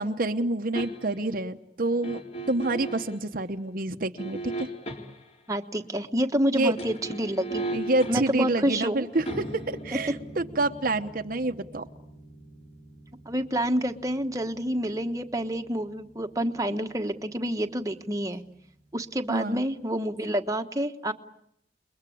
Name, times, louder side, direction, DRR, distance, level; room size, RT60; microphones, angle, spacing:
voice 1, 0.0-2.2 2.5-4.7 6.5-6.7 7.7-11.9 19.3-19.6, right 2 dB, 55° right, 6 dB, 1.0 m, -28 dB
sound 1, 0.7-1.3 2.0-3.2 4.2-5.4 6.6-17.6 17.9-18.0, right 2 dB, 40° left, 3.4 m, -39 dB
voice 2, 5.5-7.7 8.1-9.1 13.3-18.4 18.9-21.1, equal, 20° right, 5 dB, 1.3 m, -28 dB
30.0 x 22.0 x 8.6 m, 0.73 s
head